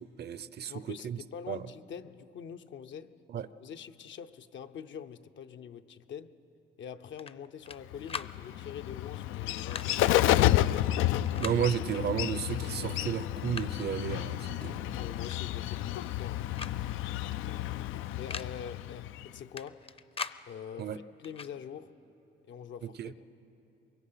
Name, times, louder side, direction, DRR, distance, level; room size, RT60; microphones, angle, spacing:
voice 1, 0.0-1.2 1.5-1.6 3.3-3.5 11.4-14.8 20.8-21.0 22.8-23.1, right 8 dB, 55° right, 0.7 m, -33 dB
voice 2, 0.7-3.1 3.6-6.3 6.8-10.4 15.0-16.4 17.1-17.8 18.1-19.8 20.5-21.9 22.5-23.2, left 8 dB, 70° left, 0.8 m, -45 dB
sound 1, 7.2-7.8 8.1-8.3 9.5-9.9 11.2-11.6 12.7-12.8 13.2-13.9 15.2-15.4 15.7-16.2 16.5-16.8 17.0-17.1 18.1-18.5 19.6-20.4 21.2-21.5, left 5 dB, 30° left, 0.6 m, -41 dB
Bird, 7.9-19.4, left 14 dB, 85° left, 0.4 m, -31 dB
24.0 x 22.5 x 5.7 m
cardioid pair, 90°, 20 cm